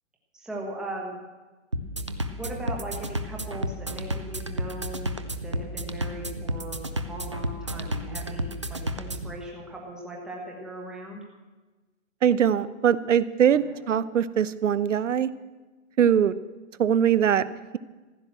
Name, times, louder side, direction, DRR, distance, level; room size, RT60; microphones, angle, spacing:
voice 1, 0.3-1.2 2.3-11.2 13.5-13.8, right 1 dB, ahead, -2 dB, 1.2 m, -38 dB
sound 1, 1.7-9.3, equal, 25° right, 0.4 m, -32 dB
voice 2, 12.2-15.3 16.0-16.4 16.8-17.5, right 9 dB, 80° right, 15 dB, 0.8 m, -22 dB
15.0 x 11.0 x 7.5 m, 1.2 s
hypercardioid pair, 170°, 37 cm